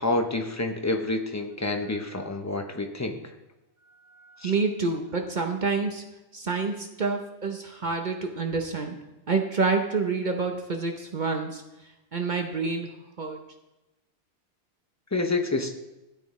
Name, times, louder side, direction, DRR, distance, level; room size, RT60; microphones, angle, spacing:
voice 1, 0.0-3.2 4.4-4.5 15.1-15.7, left 2 dB, 15° left, 5 dB, 0.7 m, -28 dB
voice 2, 3.9-6.0 6.3-9.0 9.3-11.6 12.1-13.4, right 4 dB, 45° right, 4 dB, 0.9 m, -28 dB
13.0 x 8.4 x 3.1 m, 0.98 s
omnidirectional pair, 1.2 m